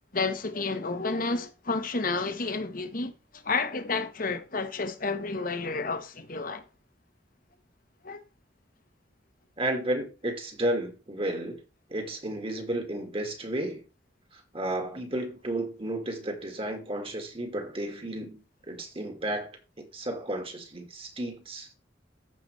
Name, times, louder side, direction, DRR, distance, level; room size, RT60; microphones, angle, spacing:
voice 1, 0.1-6.6 8.0-8.2, left 3 dB, 50° left, 1.2 m, -31 dB
voice 2, 9.6-11.6 11.9-13.8 14.3-18.4 18.7-19.5 19.8-21.7, right 1 dB, 30° right, 1.9 m, -32 dB
15.0 x 5.0 x 3.2 m
head